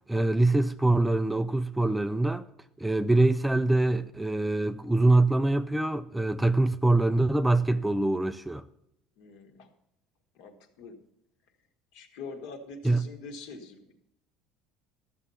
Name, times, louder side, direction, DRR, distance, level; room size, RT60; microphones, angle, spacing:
voice 1, 0.1-2.4 2.8-8.6 12.8-13.0, right 2 dB, 5° right, 0.3 m, -24 dB
voice 2, 9.2-9.7 10.3-11.0 11.9-13.9, left 4 dB, 65° left, 1.7 m, -44 dB
13.5 x 7.3 x 5.5 m
cardioid pair, 160°, 0 cm